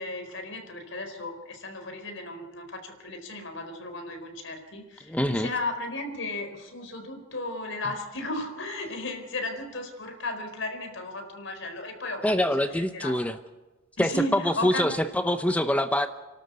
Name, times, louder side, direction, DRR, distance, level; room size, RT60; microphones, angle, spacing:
voice 1, 0.0-13.1 14.0-14.9, left 2 dB, 70° left, 6 dB, 4.3 m, -35 dB
voice 2, 5.1-5.5 12.2-13.4 14.0-16.1, left 1 dB, 5° left, 9 dB, 0.7 m, -25 dB
29.5 x 13.0 x 8.2 m, 1.1 s
head